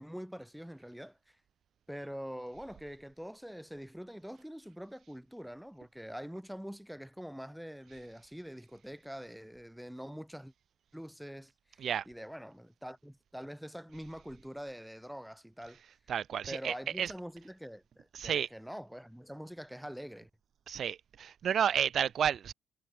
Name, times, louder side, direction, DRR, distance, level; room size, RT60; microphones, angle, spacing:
voice 1, 0.0-1.4 1.9-10.5 10.9-15.8 16.5-20.3, equal, ahead, 0.5 m, -45 dB
voice 2, 16.1-17.1 18.1-18.5 20.7-22.5, right 8 dB, 45° right, 0.6 m, -31 dB
cardioid pair, 150°, 0 cm